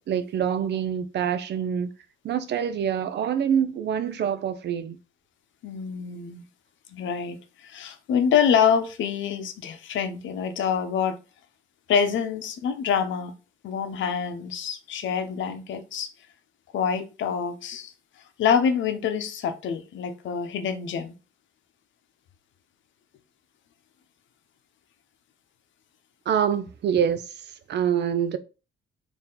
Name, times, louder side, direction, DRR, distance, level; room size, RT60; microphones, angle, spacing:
voice 1, 0.0-1.9 2.2-5.0 26.3-28.4, right 8 dB, 60° right, 0.5 m, -26 dB
voice 2, 5.6-6.4 6.9-11.2 11.9-13.3 13.6-16.1 16.7-17.9 18.4-21.1, left 7 dB, 70° left, 0.8 m, -26 dB
4.4 x 2.8 x 3.8 m
cardioid pair, 90°, 20 cm